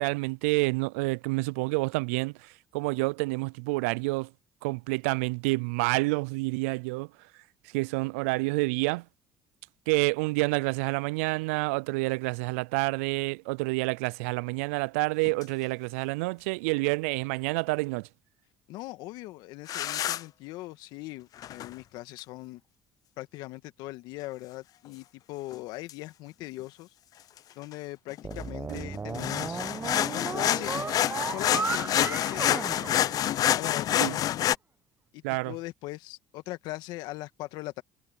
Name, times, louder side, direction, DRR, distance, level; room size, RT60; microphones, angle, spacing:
voice 1, 0.0-4.3 4.6-7.1 7.7-9.0 9.9-18.1 28.7-28.8 34.0-34.1 35.2-35.5, right 26 dB, 80° right, 0.4 m, -28 dB
sound 1, 15.2-15.4 19.7-20.2 21.4-21.7 25.5-25.6 25.9-26.0 27.4-27.5 27.7-27.8 28.1-34.5, left 12 dB, 55° left, 0.7 m, -27 dB
voice 2, 18.7-22.6 23.2-26.9 27.6-29.7 29.9-30.7 31.2-33.0 33.5-34.5 35.1-37.8, left 18 dB, 75° left, 1.7 m, -40 dB
sound 2, 28.2-33.7, right 4 dB, 25° right, 1.1 m, -35 dB
hypercardioid pair, 65°, 7 cm